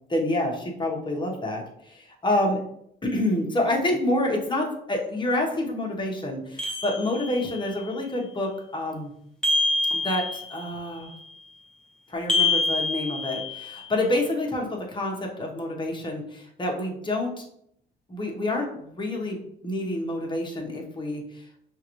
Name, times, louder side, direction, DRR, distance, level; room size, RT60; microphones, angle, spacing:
voice 1, 0.1-2.6 3.0-9.1 9.9-11.1 12.1-17.4 18.1-21.2, left 1 dB, 25° left, -1 dB, 1.1 m, -28 dB
sound 1, 6.6-7.6 9.4-10.7 12.3-13.8, left 3 dB, 5° left, 1.2 m, -26 dB
5.6 x 2.6 x 3.0 m, 0.72 s
cardioid pair, 90°, 20 cm